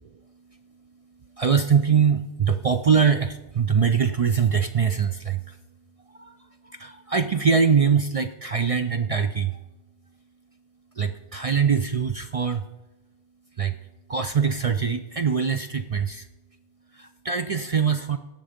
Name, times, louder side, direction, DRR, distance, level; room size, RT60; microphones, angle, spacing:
voice 1, 1.4-5.6 6.1-6.4 6.6-9.6 11.0-12.6 13.6-13.8 14.1-16.3 16.9-18.2, right 6 dB, 50° right, 8 dB, 0.4 m, -23 dB
17.0 x 6.6 x 5.1 m, 1.0 s
omnidirectional pair, 1.1 m